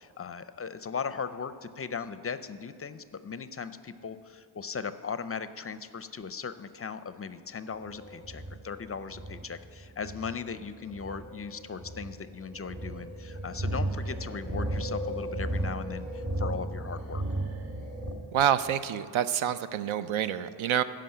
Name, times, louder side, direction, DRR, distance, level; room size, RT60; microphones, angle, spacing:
voice 1, 0.0-17.2, left 6 dB, 30° left, 12 dB, 0.4 m, -38 dB
sound 1, 7.7-18.1, right 1 dB, 35° right, 2.1 m, -35 dB
voice 2, 18.3-20.8, right 10 dB, 80° right, 13 dB, 0.6 m, -27 dB
11.5 x 5.2 x 7.7 m, 2.6 s
cardioid pair, 60°, 48 cm